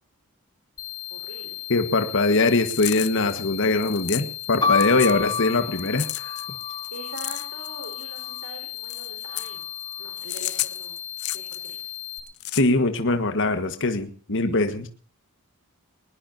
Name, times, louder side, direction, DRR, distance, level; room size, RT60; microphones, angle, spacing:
sound 1, 0.8-12.2, left 14 dB, 40° left, 3.4 m, -36 dB
voice 1, 1.1-1.6 2.0-2.3 4.5-5.3 6.9-9.6 10.0-11.0 11.3-11.8, right 2 dB, 65° right, 2 dB, 4.9 m, -43 dB
voice 2, 1.7-6.3 12.5-14.9, left 3 dB, 60° left, 7 dB, 1.6 m, -22 dB
sound 2, 2.5-4.6 4.8-5.5 5.8-8.4 8.8-9.6 10.2-11.8 12.2-12.6, left 17 dB, 75° left, 0.8 m, -32 dB
sound 3, 4.6-8.5 9.3-10.0, left 5 dB, 20° left, 0.9 m, -30 dB
21.5 x 20.0 x 2.8 m, 0.40 s
head